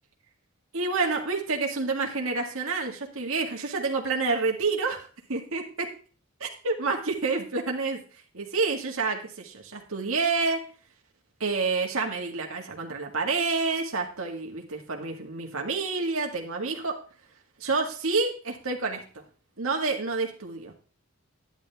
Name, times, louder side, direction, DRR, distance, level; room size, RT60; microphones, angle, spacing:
voice 1, 0.7-5.6 6.4-8.0 8.3-10.6 11.4-17.0 17.6-19.0 19.6-20.7, right 4 dB, 65° right, 2 dB, 1.9 m, -28 dB
11.0 x 10.5 x 3.5 m, 0.38 s
head